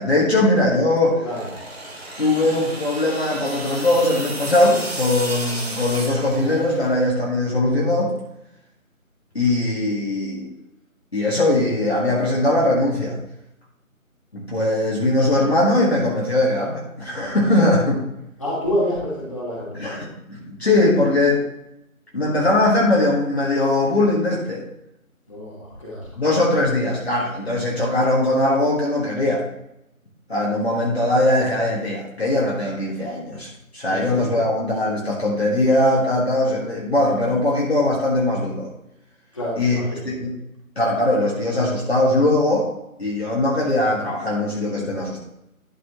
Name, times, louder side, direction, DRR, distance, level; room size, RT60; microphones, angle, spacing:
voice 1, 0.0-1.3 2.2-8.1 9.3-10.5 11.1-13.2 14.3-18.0 19.7-21.4 22.1-24.7 26.2-29.5 30.3-38.7 39.6-40.3 40.8-42.7 43.0-45.2, left 1 dB, 45° left, -5 dB, 1.8 m, -20 dB
sound 1, 1.2-7.0, right 1 dB, 45° right, 1.5 m, -33 dB
voice 2, 18.4-19.8 25.3-26.1 33.9-34.0 39.3-39.9, equal, 20° left, -7 dB, 2.4 m, -27 dB
11.5 x 4.7 x 3.0 m, 0.84 s
figure-of-eight pair, 170°, 43 cm